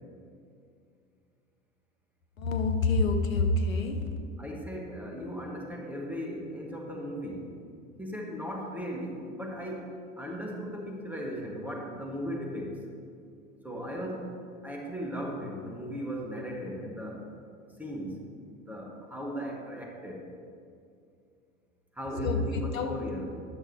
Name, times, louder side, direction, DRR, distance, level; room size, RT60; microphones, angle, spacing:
voice 1, 2.4-4.0 22.2-23.0, left 3 dB, 75° left, 5 dB, 0.8 m, -27 dB
voice 2, 4.4-7.6 8.0-12.9 13.6-14.4 14.6-17.2 17.8-18.2 18.5-20.3 21.9-23.4, equal, 5° right, 0 dB, 1.3 m, -37 dB
9.9 x 6.6 x 4.5 m, 2.4 s
figure-of-eight pair, 80°, 40 cm